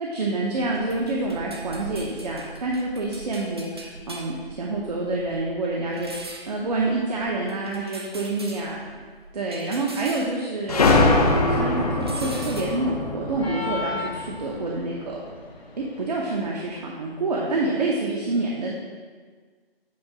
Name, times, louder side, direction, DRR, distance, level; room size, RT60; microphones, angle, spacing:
voice 1, 0.1-8.8 9.3-11.2 11.5-15.2 15.8-18.7, right 2 dB, 40° right, -2 dB, 0.9 m, -27 dB
sound 1, 0.5-11.4 11.6-12.6, right 2 dB, 25° right, 0.5 m, -41 dB
sound 2, 10.7-15.1, left 2 dB, 40° left, 0.6 m, -23 dB
sound 3, 13.4-14.9, left 4 dB, 85° left, 1.3 m, -32 dB
8.5 x 2.9 x 5.9 m, 1.5 s
figure-of-eight pair, 160°, 30 cm